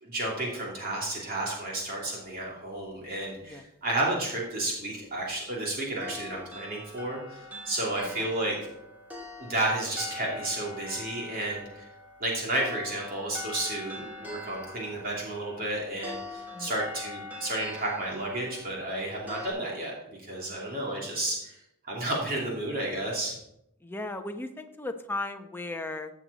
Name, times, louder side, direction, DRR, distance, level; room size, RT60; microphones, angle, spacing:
voice 1, 0.0-8.6 9.4-11.9 12.2-21.6 21.8-23.3, right 1 dB, 40° right, -3 dB, 2.7 m, -32 dB
sound 1, 6.0-19.5, left 2 dB, 10° right, 2.7 m, -44 dB
voice 2, 23.8-26.1, left 2 dB, 10° left, 5 dB, 0.8 m, -36 dB
15.5 x 7.7 x 4.1 m, 0.80 s
head